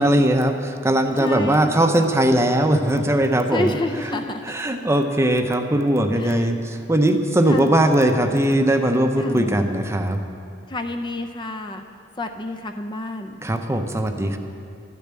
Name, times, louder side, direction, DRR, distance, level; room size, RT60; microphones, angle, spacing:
voice 1, 0.0-10.2 13.4-14.4, right 1 dB, 15° right, 6 dB, 0.7 m, -20 dB
voice 2, 1.2-1.8 3.5-4.4 6.2-6.5 7.4-7.7 9.2-9.5 10.7-11.8 12.2-13.4, left 2 dB, 25° left, 6 dB, 0.5 m, -29 dB
12.5 x 6.9 x 8.8 m, 2.4 s
head